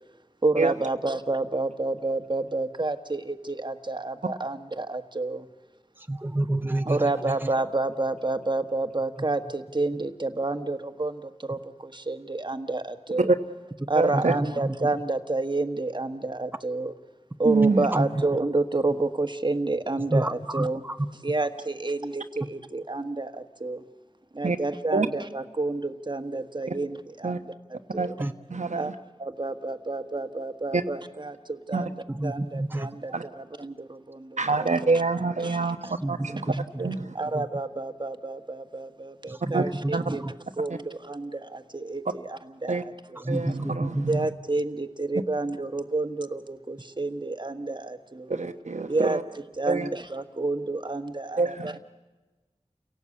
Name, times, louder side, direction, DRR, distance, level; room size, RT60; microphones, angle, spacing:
voice 1, 0.4-5.5 6.8-13.3 13.9-16.9 17.4-20.8 21.2-23.8 24.3-27.4 27.9-28.1 28.8-28.9 29.2-31.9 32.2-34.7 35.4-35.7 37.1-40.2 40.6-43.2 44.1-48.3 48.9-49.2 49.6-51.8, right 2 dB, 40° right, 8 dB, 1.4 m, -29 dB
voice 2, 6.1-7.0 14.1-14.2 14.6-14.9 17.9-18.1 20.1-21.0 28.2-28.3 32.1-32.9 36.0-36.1 36.5-36.6 37.3-37.4 39.4-40.3 43.2-44.2, right 1 dB, 15° right, 8 dB, 0.8 m, -28 dB
voice 3, 13.9-14.3 17.4-17.9 24.4-24.6 24.9-25.1 26.7-26.8 27.2-27.4 28.0-28.1 28.5-28.9 30.7-30.8 31.7-31.9 33.1-33.2 34.4-37.1 39.5-40.0 42.7-42.8 43.3-44.3 48.3-49.2 49.7-49.9 51.4-51.8, right 3 dB, 85° right, 6 dB, 1.1 m, -26 dB
29.0 x 17.5 x 8.5 m, 1.2 s
wide cardioid pair, 40°, 12 cm